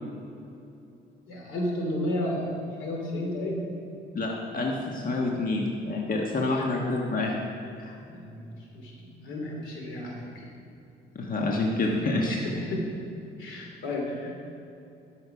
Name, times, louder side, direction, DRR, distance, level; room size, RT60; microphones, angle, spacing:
voice 1, 1.3-3.6 6.5-6.6 8.1-10.4 12.1-12.8 13.4-14.5, left 1 dB, 80° left, -1 dB, 2.8 m, -33 dB
voice 2, 4.1-7.3 7.8-8.0 11.1-12.4, left 2 dB, 45° left, -1 dB, 1.4 m, -28 dB
12.0 x 6.6 x 5.8 m, 2.7 s
cardioid pair, 90°, 20 cm